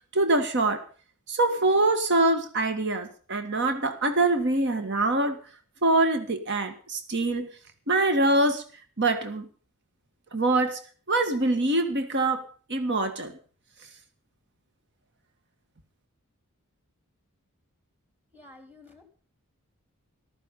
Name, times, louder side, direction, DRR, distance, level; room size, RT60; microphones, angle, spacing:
voice 1, 0.1-0.8 1.3-5.4 5.8-7.5 7.9-8.6 9.0-9.5 10.3-10.8 11.1-13.3, right 2 dB, 55° right, 9 dB, 1.7 m, -24 dB
voice 2, 18.3-19.0, left 2 dB, 10° right, 6 dB, 3.1 m, -51 dB
14.0 x 13.5 x 5.4 m, 0.39 s
head